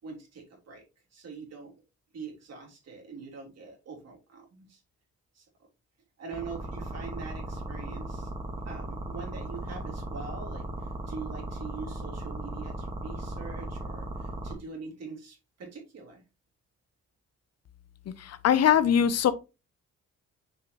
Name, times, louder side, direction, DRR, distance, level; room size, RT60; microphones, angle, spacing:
voice 1, 0.0-0.8 1.1-1.7 2.1-4.8 5.3-5.4 6.2-8.3 8.6-16.2, right 4 dB, 55° right, 3.2 m, -43 dB
sound 1, 6.3-14.5, right 2 dB, 15° right, 1.8 m, -37 dB
voice 2, 18.2-19.3, left 9 dB, 55° left, 0.8 m, -22 dB
6.4 x 4.9 x 3.1 m
cardioid pair, 90°, 30 cm